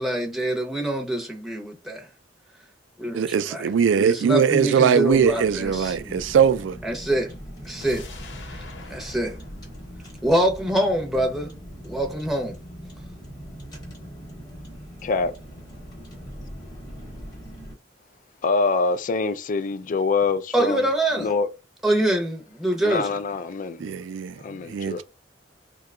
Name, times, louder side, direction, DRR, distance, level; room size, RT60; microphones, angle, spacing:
voice 1, 0.0-2.1 3.0-3.7 4.0-6.2 6.8-7.3 7.6-8.0 8.4-9.3 10.2-11.5 11.8-12.6 20.5-21.3 21.8-23.1, right 1 dB, ahead, 0.7 m, -25 dB
voice 2, 3.1-6.8 23.8-25.0, right 7 dB, 85° right, 0.3 m, -21 dB
Car, 5.1-17.7, equal, 20° left, 1.0 m, -41 dB
sound 1, 7.8-10.9 11.3-11.4, left 2 dB, 75° left, 0.8 m, -43 dB
voice 3, 18.4-20.9 21.2-21.5 22.8-23.8 24.4-25.0, left 4 dB, 45° left, 0.3 m, -25 dB
2.8 x 2.2 x 3.5 m
head